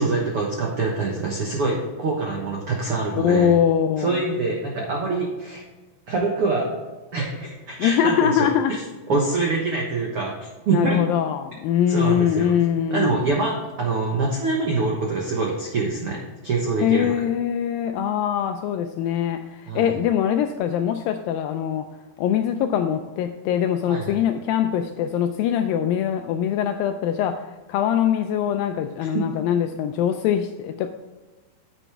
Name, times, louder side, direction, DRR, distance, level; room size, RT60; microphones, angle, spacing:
voice 1, 0.0-3.5 4.0-5.6 6.1-6.8 7.1-8.5 9.1-11.0 11.9-12.5 12.9-17.1 19.7-19.9 23.9-24.2, right 3 dB, 80° right, -1 dB, 1.3 m, -25 dB
voice 2, 3.2-4.2 7.8-8.8 10.7-13.3 16.8-21.9 22.2-30.9, left 9 dB, 85° left, 7 dB, 2.1 m, -22 dB
10.0 x 8.2 x 3.4 m, 1.2 s
omnidirectional pair, 4.5 m